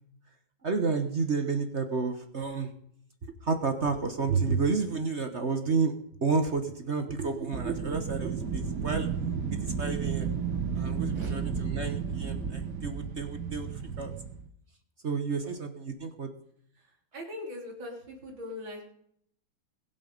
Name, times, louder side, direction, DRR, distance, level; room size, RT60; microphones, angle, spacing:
voice 1, 0.6-2.7 3.2-5.9 6.2-9.1 9.6-10.3 10.7-13.7 14.0-14.1 15.0-16.3, right 4 dB, 40° right, 7 dB, 1.2 m, -30 dB
Wind, 7.5-14.5, right 6 dB, 55° right, 2.0 m, -32 dB
voice 2, 17.1-18.8, left 2 dB, 75° right, 1 dB, 4.0 m, -40 dB
21.0 x 8.0 x 5.3 m, 0.68 s
omnidirectional pair, 2.2 m